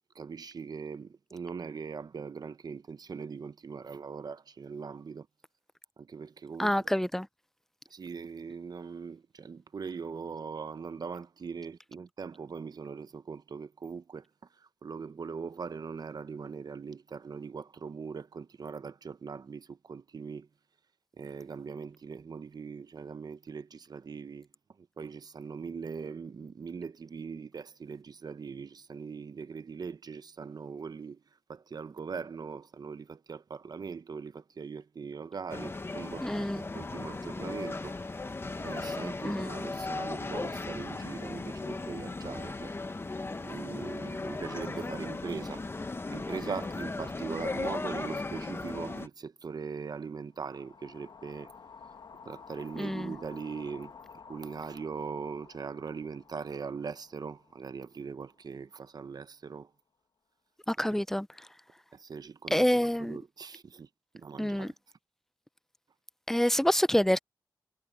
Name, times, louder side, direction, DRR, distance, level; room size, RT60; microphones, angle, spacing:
voice 1, 0.1-5.3 6.0-6.9 7.9-14.3 14.6-20.5 21.2-24.5 24.8-31.2 31.5-38.0 38.6-42.7 43.4-45.7 46.1-51.5 52.2-53.9 54.3-59.7 61.9-63.9 64.1-64.7, right 5 dB, 60° right, 0.8 m, -41 dB
voice 2, 6.6-7.3 36.2-36.6 39.2-39.5 52.8-53.1 60.7-61.3 62.5-63.2 64.4-64.7 66.3-67.2, equal, 5° left, 0.5 m, -27 dB
sound 1, 35.5-49.1, left 3 dB, 30° left, 1.1 m, -37 dB
sound 2, 40.1-43.0, left 5 dB, 55° left, 1.4 m, -55 dB
sound 3, 50.3-58.6, left 5 dB, 80° left, 1.8 m, -52 dB
wide cardioid pair, 95°, 8 cm